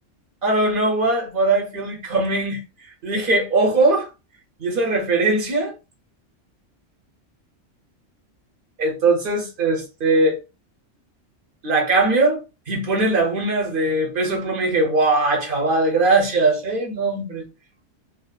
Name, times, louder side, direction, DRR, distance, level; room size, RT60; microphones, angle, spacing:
voice 1, 0.4-2.6 3.0-4.1 4.6-5.7 8.8-10.4 11.6-12.4 12.7-17.4, right 2 dB, 50° right, 0.8 m, -20 dB
2.7 x 2.3 x 2.2 m
omnidirectional pair, 1.3 m